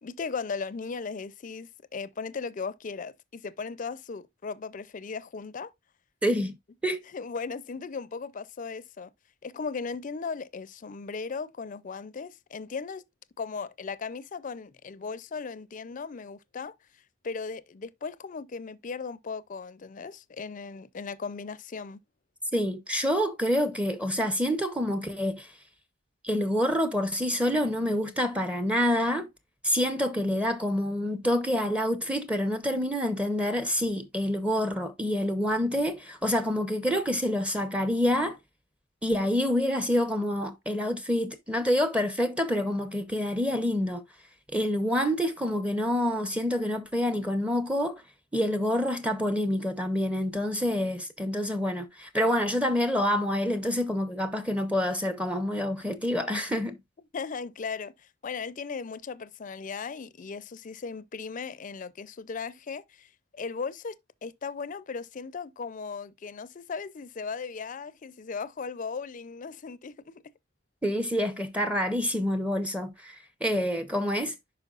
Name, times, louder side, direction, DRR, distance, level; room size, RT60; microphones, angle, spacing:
voice 1, 0.0-5.7 7.1-9.1 9.4-13.0 13.4-16.7 17.2-22.0 57.1-63.9 64.2-70.1, left 5 dB, 45° left, 0.4 m, -37 dB
voice 2, 6.2-6.6 6.8-7.0 22.5-25.5 26.2-29.3 29.6-38.4 39.0-44.0 44.5-48.0 48.3-56.8 70.8-74.3, equal, 5° right, 0.6 m, -27 dB
10.5 x 4.4 x 2.4 m
head